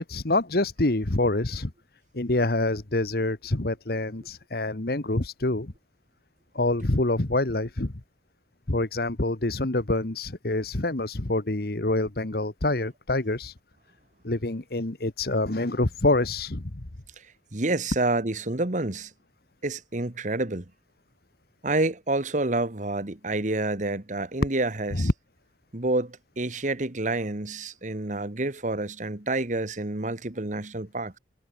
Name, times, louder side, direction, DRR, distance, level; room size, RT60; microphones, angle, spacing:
voice 1, 0.0-1.7 2.1-5.7 6.5-7.9 8.7-13.5 14.2-16.8 24.9-25.1, left 2 dB, 60° left, 1.4 m, -26 dB
voice 2, 17.2-19.1 19.6-20.6 21.6-25.1 25.7-31.2, right 2 dB, 45° right, 1.6 m, -28 dB
head